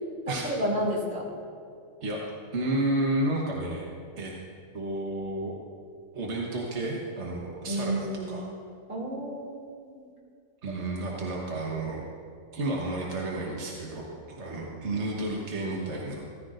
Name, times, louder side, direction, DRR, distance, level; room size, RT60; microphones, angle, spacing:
voice 1, 0.3-1.3 7.7-8.3 8.9-10.1 10.7-10.8 14.5-14.7, right 1 dB, 85° right, -4 dB, 3.3 m, -31 dB
voice 2, 2.5-3.9 4.2-4.3 4.7-5.5 6.1-8.4 10.6-12.0 12.5-16.2, right 2 dB, 55° right, -3 dB, 1.6 m, -31 dB
16.0 x 14.5 x 2.6 m, 2.3 s
omnidirectional pair, 1.4 m